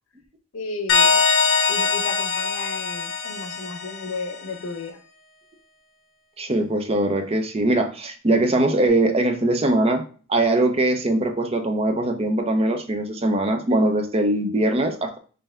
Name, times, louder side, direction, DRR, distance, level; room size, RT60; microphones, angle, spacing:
voice 1, 0.5-1.2 1.7-5.0, left 3 dB, 85° left, 0.7 m, -34 dB
sound 1, 0.9-4.3, left 5 dB, 60° left, 1.1 m, -22 dB
voice 2, 6.4-10.0 10.3-15.2, right 1 dB, 30° right, 0.6 m, -21 dB
5.5 x 2.7 x 3.3 m
head